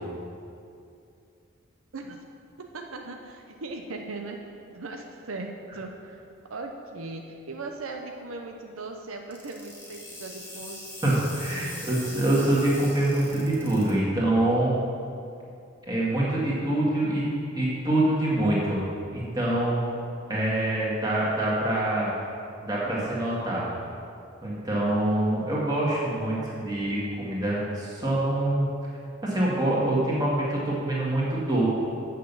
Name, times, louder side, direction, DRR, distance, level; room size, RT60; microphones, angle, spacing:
voice 1, 1.9-2.2 2.6-4.4 4.7-6.2 6.5-10.8, right 3 dB, 85° right, 3 dB, 0.7 m, -38 dB
sound 1, 9.3-13.9, left 1 dB, 10° left, 1.5 m, -41 dB
voice 2, 11.0-14.7 15.9-17.2 17.5-18.8 19.1-19.8 20.3-22.1 22.6-23.6 24.4-28.7 29.2-31.6, right 1 dB, 20° right, -6 dB, 2.0 m, -25 dB
7.7 x 6.5 x 6.9 m, 2.5 s
head